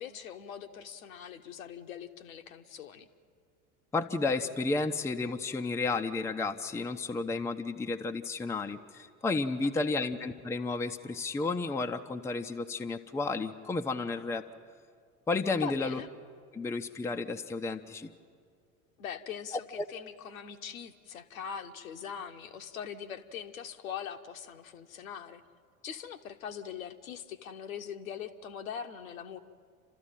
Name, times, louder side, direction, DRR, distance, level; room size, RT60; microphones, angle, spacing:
voice 1, 0.0-3.1 9.8-10.1 15.6-16.1 19.0-25.4 25.8-29.4, left 8 dB, 65° left, 7 dB, 1.2 m, -42 dB
voice 2, 3.9-14.4 15.3-16.0 16.5-18.1 19.8-19.9, left 3 dB, 5° left, 6 dB, 0.7 m, -32 dB
29.5 x 13.5 x 9.0 m, 2.1 s
figure-of-eight pair, 75°, 44 cm